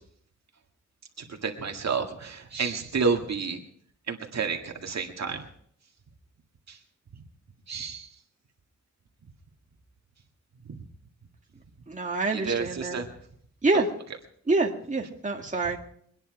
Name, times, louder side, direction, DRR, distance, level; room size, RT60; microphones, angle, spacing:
voice 1, 1.2-3.6 4.1-5.4 6.7-6.8 7.7-8.1 10.7-10.8 12.3-13.1 13.7-13.8, right 5 dB, 60° right, 3 dB, 1.9 m, -30 dB
voice 2, 11.9-13.0 13.6-13.9 14.5-15.8, right 3 dB, 25° right, 1 dB, 2.0 m, -26 dB
24.0 x 10.0 x 4.9 m, 0.64 s
wide cardioid pair, 100°, 30 cm